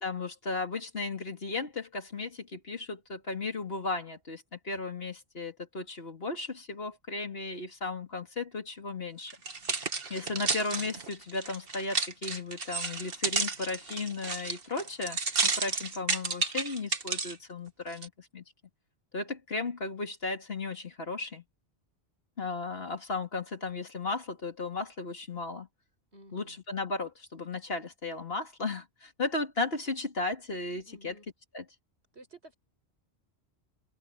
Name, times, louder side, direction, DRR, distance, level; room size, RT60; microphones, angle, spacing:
voice 1, 0.0-9.3 10.1-18.4 19.1-21.4 22.4-25.7 26.3-31.1 31.5-31.6, left 3 dB, 65° left, 3.1 m, -35 dB
sound 1, 9.3-17.3 17.9-18.1, right 4 dB, 60° right, 1.8 m, -32 dB
voice 2, 26.1-26.6 30.9-31.3 32.1-32.5, right 1 dB, 75° right, 6.1 m, -52 dB
omnidirectional pair, 1.1 m